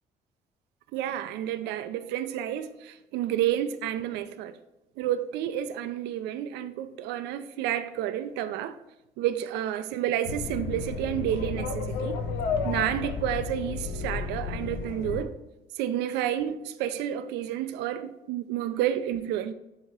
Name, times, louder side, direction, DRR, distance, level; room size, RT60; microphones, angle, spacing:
voice 1, 0.9-4.6 5.0-8.8 9.2-12.3 12.6-15.4 15.8-19.5, right 11 dB, 90° right, 0.4 m, -30 dB
sound 1, 10.2-15.3, left 5 dB, 85° left, 0.7 m, -32 dB
7.3 x 2.9 x 4.5 m
cardioid pair, 110°, 17 cm